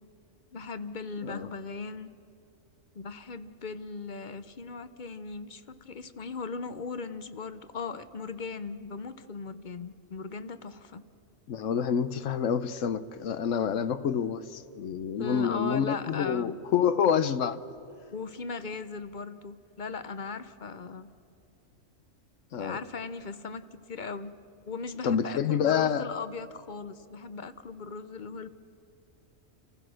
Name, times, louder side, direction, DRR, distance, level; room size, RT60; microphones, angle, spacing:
voice 1, 0.5-2.1 2.9-11.0 15.2-16.6 18.1-21.1 22.5-24.4 24.7-28.5, left 4 dB, 45° left, 0.7 m, -38 dB
voice 2, 11.5-17.6 22.5-22.8 25.0-26.1, left 8 dB, 70° left, 1.1 m, -27 dB
29.5 x 15.0 x 6.3 m
omnidirectional pair, 1.4 m